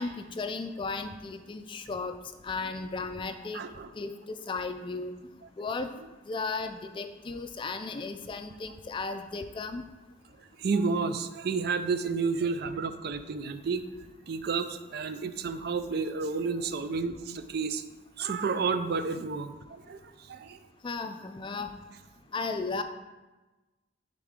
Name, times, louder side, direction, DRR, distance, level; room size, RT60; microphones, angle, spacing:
voice 1, 0.0-2.1 2.4-3.6 4.0-5.1 5.6-5.9 6.3-9.8 20.8-21.7 22.3-22.8, left 3 dB, 25° left, 8 dB, 0.3 m, -35 dB
voice 2, 3.5-3.9 10.6-13.9 14.3-17.8 18.2-20.0 20.3-20.6, right 4 dB, 55° right, 10 dB, 0.4 m, -31 dB
10.5 x 3.7 x 3.6 m, 1.2 s
head